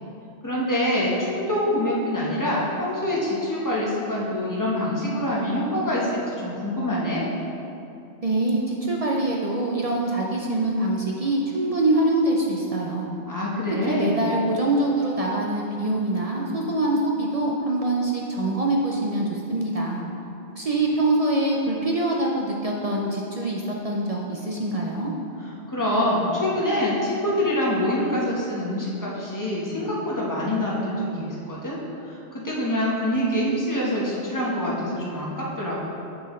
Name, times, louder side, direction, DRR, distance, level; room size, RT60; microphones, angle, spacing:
voice 1, 0.4-7.2 13.3-14.3 25.4-31.8 32.1-35.8, left 1 dB, 15° left, -6 dB, 1.1 m, -25 dB
voice 2, 8.2-13.1 13.9-20.0 20.6-25.1, right 2 dB, 45° right, -1 dB, 0.5 m, -24 dB
6.8 x 6.2 x 3.2 m, 2.8 s
omnidirectional pair, 1.2 m